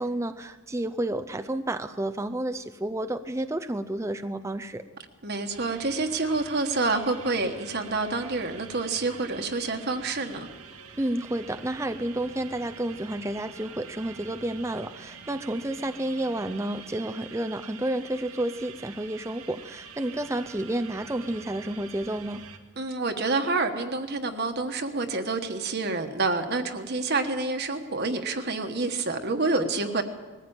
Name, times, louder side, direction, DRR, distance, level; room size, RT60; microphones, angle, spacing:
voice 1, 0.0-4.8 11.0-22.5, right 1 dB, 15° right, 8 dB, 0.5 m, -30 dB
voice 2, 5.2-10.5 22.8-30.0, right 3 dB, 45° right, 5 dB, 1.4 m, -28 dB
sound 1, 5.5-22.6, right 6 dB, 80° right, 1.8 m, -46 dB
20.5 x 14.5 x 8.9 m, 1.3 s
head